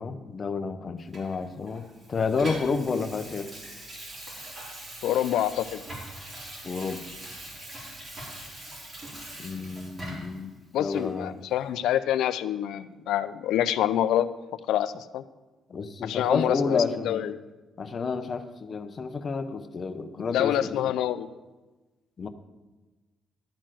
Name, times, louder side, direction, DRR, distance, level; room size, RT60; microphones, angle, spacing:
voice 1, 0.0-3.5 6.6-7.0 9.4-10.5 10.8-11.4 15.7-17.2 17.8-20.9 22.2-22.3, left 4 dB, 45° left, 9 dB, 0.8 m, -30 dB
Water tap faucet / Sink (filling or washing), 1.1-10.4 10.9-11.1, right 1 dB, 40° right, 4.1 m, -42 dB
voice 2, 5.0-5.8 10.7-14.3 14.7-15.2 16.0-17.4 20.2-21.3, left 11 dB, 85° left, 13 dB, 0.4 m, -26 dB
12.5 x 4.5 x 7.5 m, 1.2 s
cardioid pair, 90°, 0 cm